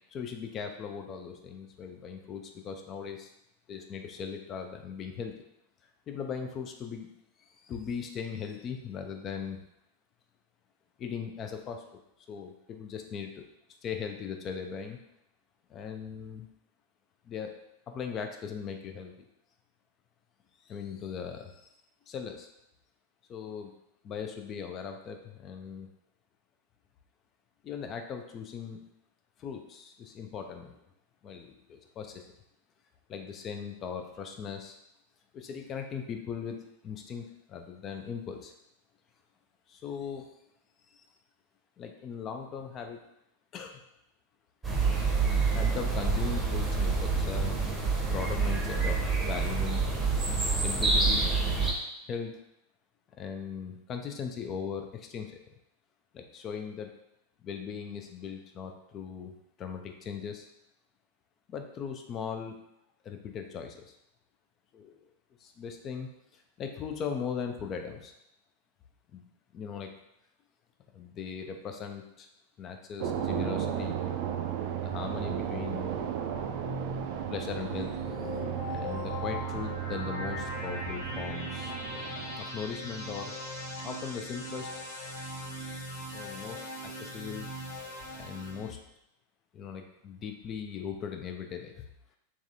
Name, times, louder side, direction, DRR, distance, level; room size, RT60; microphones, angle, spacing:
voice 1, 0.1-3.3 3.7-5.3 6.1-7.1 7.4-9.6 11.0-11.8 12.3-13.4 13.8-15.0 15.7-16.5 17.2-17.6 17.9-19.1 20.6-21.7 22.1-22.5 23.3-23.7 24.0-25.9 27.6-28.8 29.4-30.8 31.2-32.3 33.1-34.8 35.3-36.6 36.8-38.5 39.7-40.2 40.9-41.1 41.8-43.0 43.5-43.8 45.5-47.6 48.0-49.9 50.6-51.3 52.1-52.4 53.1-55.3 56.1-56.9 57.4-60.5 61.5-62.6 63.0-64.0 64.7-65.0 65.4-68.1 69.1-69.2 69.5-69.9 70.9-72.3 72.6-73.9 74.8-75.9 77.3-78.0 78.7-81.8 82.4-83.3 83.8-84.7 86.1-87.5 88.2-88.8 89.5-91.9, left 6 dB, 30° left, 5 dB, 0.4 m, -39 dB
sound 1, 44.6-51.7, right 4 dB, 15° right, 0.8 m, -27 dB
sound 2, 73.0-82.4, right 9 dB, 45° right, 0.3 m, -35 dB
sound 3, 76.1-88.7, equal, 55° left, 1.3 m, -39 dB
3.5 x 3.1 x 2.7 m, 0.80 s
figure-of-eight pair, 90°, 0 cm